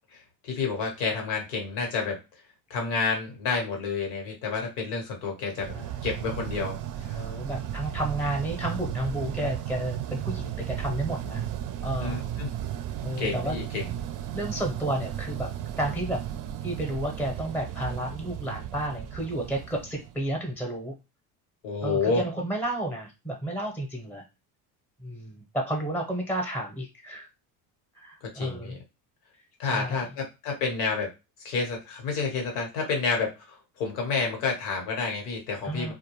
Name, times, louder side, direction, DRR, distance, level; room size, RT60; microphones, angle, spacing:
voice 1, 0.1-2.2 2.7-5.7 6.0-7.3 12.0-12.5 13.2-13.9 21.6-22.2 28.2-28.8 29.6-31.1 31.4-35.9, left 4 dB, 85° left, 2 dB, 1.1 m, -29 dB
sound 1, 5.5-20.6, right 11 dB, 45° right, 0.5 m, -35 dB
voice 2, 7.1-11.4 11.8-12.2 13.0-13.6 14.3-16.2 16.6-20.9 21.8-24.2 25.0-27.3 28.0-28.8 29.7-30.0 35.6-35.9, right 1 dB, 5° left, 2 dB, 0.7 m, -31 dB
2.3 x 2.2 x 3.0 m, 0.26 s
supercardioid pair, 75°, 45 cm